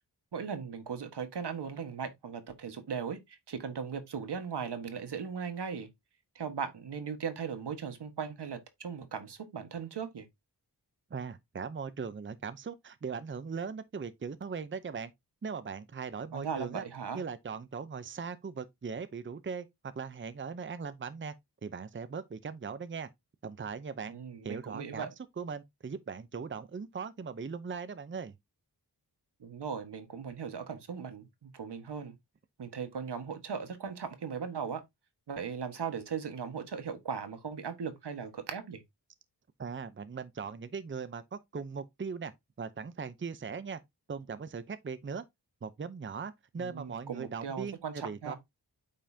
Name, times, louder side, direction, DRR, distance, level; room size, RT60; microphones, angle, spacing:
voice 1, 0.3-5.9 6.3-10.2 16.3-17.2 24.1-25.1 29.4-32.1 32.6-34.8 35.3-38.8 46.5-48.4, right 6 dB, 75° right, 1.5 m, -38 dB
voice 2, 11.1-15.1 15.4-16.8 17.1-19.7 20.0-21.3 21.6-23.1 23.4-24.1 24.4-25.1 25.4-28.3 39.6-42.3 42.6-43.8 44.1-45.2 45.6-48.3, right 5 dB, 30° right, 0.7 m, -39 dB
8.8 x 5.4 x 2.7 m
wide cardioid pair, 105°, 40 cm